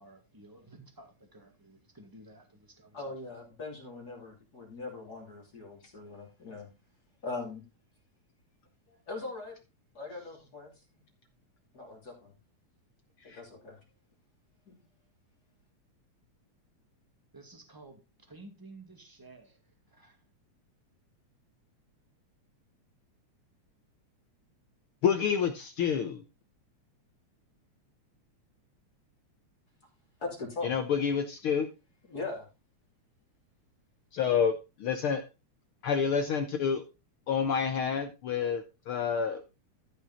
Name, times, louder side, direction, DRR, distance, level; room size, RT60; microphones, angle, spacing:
voice 1, 0.0-3.1 17.3-20.2, right 2 dB, 10° right, 4 dB, 1.3 m, -53 dB
voice 2, 2.9-6.7 7.2-7.6 8.9-9.5 9.9-10.7 11.7-12.3 13.2-13.8 14.7-14.8 30.2-30.7 32.1-32.5, left 3 dB, 30° left, -1 dB, 3.2 m, -40 dB
voice 3, 25.0-26.2 30.6-31.7 34.1-35.2 35.8-36.8 37.3-39.4, left 7 dB, 75° left, 7 dB, 1.2 m, -28 dB
13.5 x 5.4 x 4.1 m, 0.28 s
omnidirectional pair, 3.4 m